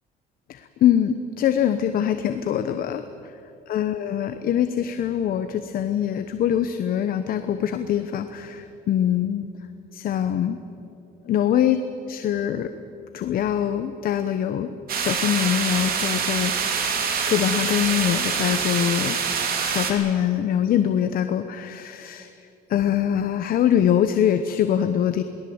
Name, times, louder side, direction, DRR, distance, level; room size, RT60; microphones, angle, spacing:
voice 1, 0.5-3.0 3.7-9.5 9.9-10.6 11.3-11.8 12.1-12.7 13.1-16.7 17.3-19.2 19.6-22.3 22.7-25.2, left 10 dB, 60° left, 9 dB, 1.0 m, -23 dB
sound 1, 14.9-19.9, right 6 dB, 60° right, 3.2 m, -25 dB
22.5 x 19.0 x 8.0 m, 2.7 s
cardioid pair, 110°, 17 cm